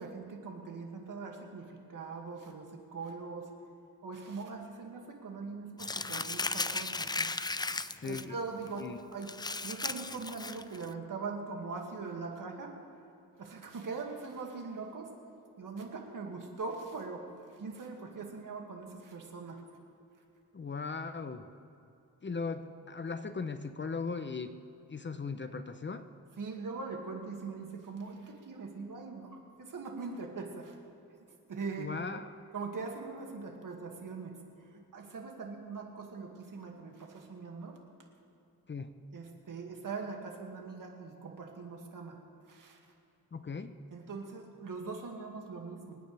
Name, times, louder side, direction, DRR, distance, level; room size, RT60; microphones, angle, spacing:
voice 1, 0.0-3.5 4.0-7.3 8.0-9.3 9.6-12.7 13.4-15.1 15.6-17.3 17.6-19.6 26.4-30.8 31.5-31.9 32.5-37.8 39.1-42.2 42.5-42.8 43.9-46.0, right 4 dB, 60° right, 1 dB, 2.3 m, -41 dB
Crumpling crinkling, 5.8-8.2 8.7-8.8 9.2-10.9, left 3 dB, 10° left, 0.4 m, -35 dB
voice 2, 8.0-8.3 8.8-9.0 20.5-21.5 22.2-24.5 24.9-26.1 31.8-32.4 38.7-38.9 43.3-43.7, left 4 dB, 30° left, 9 dB, 0.8 m, -38 dB
27.5 x 9.2 x 3.5 m, 2.8 s
cardioid pair, 80°, 36 cm